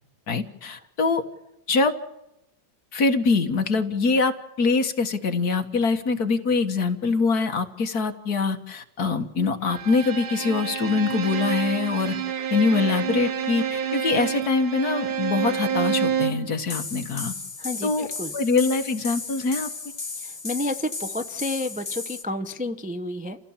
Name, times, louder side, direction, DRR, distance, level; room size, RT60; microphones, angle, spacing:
voice 1, 0.3-1.2 1.7-1.9 2.9-12.2 12.5-17.3 17.8-18.1 18.3-19.7, left 4 dB, 55° left, 6 dB, 2.0 m, -24 dB
Bowed string instrument, 9.7-16.5, right 8 dB, 85° right, 2.1 m, -28 dB
sound 1, 16.7-22.2, left 4 dB, 25° left, 1.0 m, -35 dB
voice 2, 17.6-18.3 20.2-23.4, left 1 dB, 10° right, 7 dB, 0.3 m, -30 dB
29.0 x 16.0 x 7.3 m, 0.93 s
omnidirectional pair, 2.0 m